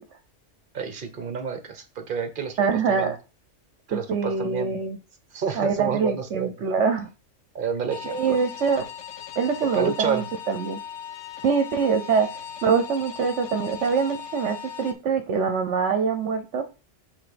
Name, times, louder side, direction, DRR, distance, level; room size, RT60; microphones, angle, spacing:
voice 1, 0.7-2.6 2.9-3.1 3.9-4.8 5.3-6.7 7.5-8.4 9.7-10.2, right 7 dB, 45° right, 8 dB, 1.2 m, -29 dB
voice 2, 2.6-3.2 3.9-5.0 5.5-7.1 8.0-8.8 9.4-10.8 11.4-16.6, right 5 dB, 75° right, 7 dB, 1.1 m, -24 dB
sound 1, 7.9-14.9, left 8 dB, 70° left, 1.0 m, -38 dB
7.2 x 2.9 x 5.2 m, 0.31 s
omnidirectional pair, 1.3 m